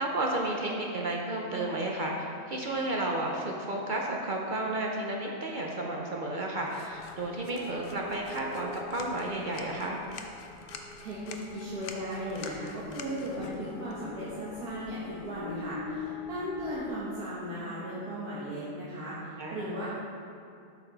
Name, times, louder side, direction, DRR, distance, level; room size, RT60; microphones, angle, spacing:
voice 1, 0.0-10.1 19.4-19.6, right 1 dB, 55° right, -1 dB, 0.5 m, -32 dB
sound 1, 6.6-15.7, left 5 dB, 70° left, 0.5 m, -49 dB
sound 2, 6.9-17.0, left 4 dB, 85° left, 1.3 m, -44 dB
voice 2, 10.7-19.9, equal, 85° right, -8 dB, 1.7 m, -37 dB
8.2 x 5.9 x 3.9 m, 2.4 s
omnidirectional pair, 1.6 m